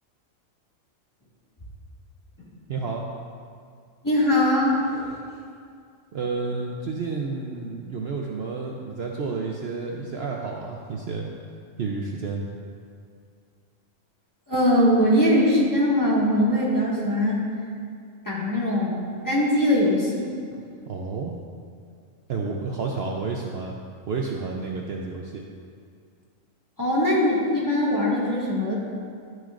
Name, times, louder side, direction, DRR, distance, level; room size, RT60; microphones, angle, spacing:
voice 1, 2.7-3.1 6.1-11.3 11.8-12.4 20.9-21.3 22.3-23.8 24.1-25.5, right 4 dB, 55° right, -1 dB, 0.8 m, -30 dB
voice 2, 4.0-5.1 14.5-17.4 18.3-19.0 19.2-20.3 26.8-28.7, left 1 dB, 15° left, -7 dB, 1.7 m, -21 dB
11.5 x 9.4 x 2.5 m, 2.2 s
omnidirectional pair, 1.4 m